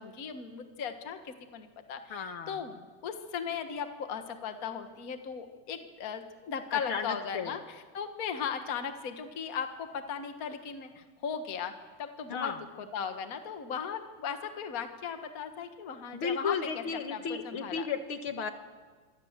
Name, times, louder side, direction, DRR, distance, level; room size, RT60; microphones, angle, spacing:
voice 1, 0.0-11.7 12.0-12.5 12.9-16.8 17.1-17.8, left 7 dB, 80° left, 7 dB, 0.8 m, -37 dB
voice 2, 2.1-2.6 6.7-7.6 12.3-12.6 16.1-18.5, left 5 dB, 50° left, 7 dB, 1.7 m, -34 dB
25.5 x 24.5 x 7.4 m, 1.4 s
omnidirectional pair, 4.1 m